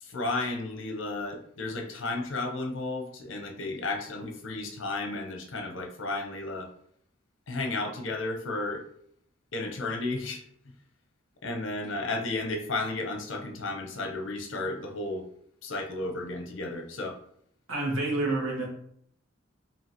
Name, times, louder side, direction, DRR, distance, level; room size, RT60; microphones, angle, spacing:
voice 1, 0.0-6.7 7.5-8.9 9.5-10.4 11.4-15.2 15.6-17.2, left 2 dB, 70° left, 3 dB, 0.7 m, -33 dB
voice 2, 17.7-18.7, right 2 dB, 90° right, -2 dB, 1.4 m, -28 dB
5.3 x 2.7 x 2.9 m, 0.69 s
head